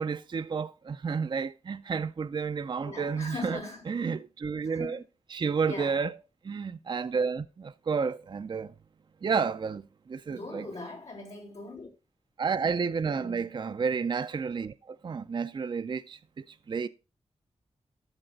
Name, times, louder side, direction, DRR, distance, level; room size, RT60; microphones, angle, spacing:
voice 1, 0.0-3.6 3.9-5.0 5.3-6.1 6.4-8.7 9.2-10.7 12.4-16.9, right 5 dB, 40° right, 0.4 m, -31 dB
voice 2, 2.8-3.8 4.6-5.0 5.7-6.0 10.3-11.9 13.0-13.5, left 3 dB, 85° left, 3.5 m, -41 dB
13.5 x 4.8 x 3.9 m
cardioid pair, 65°, 12 cm